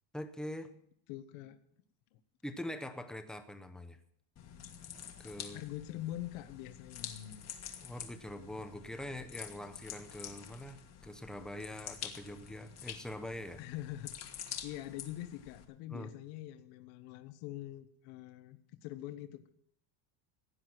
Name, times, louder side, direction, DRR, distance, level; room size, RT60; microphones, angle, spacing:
voice 1, 0.1-0.7 2.4-4.0 5.2-5.6 7.8-13.6 15.9-16.1, left 1 dB, ahead, 8 dB, 0.7 m, -43 dB
voice 2, 1.1-1.6 2.1-2.2 5.5-7.5 13.6-19.5, left 14 dB, 70° left, 10 dB, 1.2 m, -44 dB
sound 1, 4.4-15.6, left 8 dB, 30° left, 1.5 m, -48 dB
16.0 x 9.7 x 6.0 m, 0.67 s
cardioid pair, 165°, 49 cm